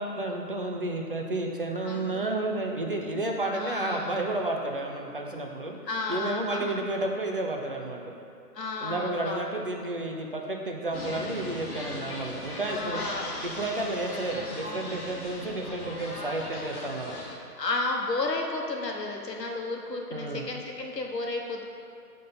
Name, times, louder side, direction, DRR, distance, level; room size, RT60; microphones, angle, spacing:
voice 1, 0.0-5.8 6.1-8.1 8.8-13.0 13.4-17.2 20.1-20.5, right 2 dB, 35° right, 1 dB, 0.5 m, -31 dB
voice 2, 1.8-2.2 3.5-4.2 5.9-6.8 8.5-9.5 12.7-13.3 17.6-21.6, left 3 dB, 80° left, 1 dB, 1.3 m, -32 dB
sound 1, 10.9-17.4, left 1 dB, 65° left, 1.6 m, -38 dB
11.0 x 3.8 x 3.9 m, 2.7 s
figure-of-eight pair, 150°, 48 cm